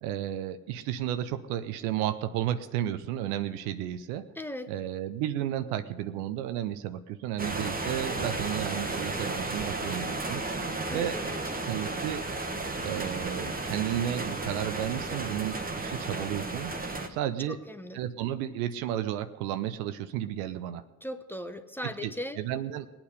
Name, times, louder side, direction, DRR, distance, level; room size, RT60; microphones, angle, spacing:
voice 1, 0.0-4.3 4.7-10.4 10.9-11.1 11.7-12.3 12.8-16.7 17.1-17.6 17.9-20.8 22.0-22.9, right 11 dB, 70° right, 12 dB, 0.7 m, -32 dB
voice 2, 4.3-4.7 10.9-11.4 17.5-18.0 21.0-22.4, left 1 dB, 5° left, 9 dB, 0.9 m, -38 dB
sound 1, 7.4-17.1, right 2 dB, 20° right, 1.4 m, -33 dB
20.0 x 8.8 x 5.1 m, 1.2 s
figure-of-eight pair, 45°, 44 cm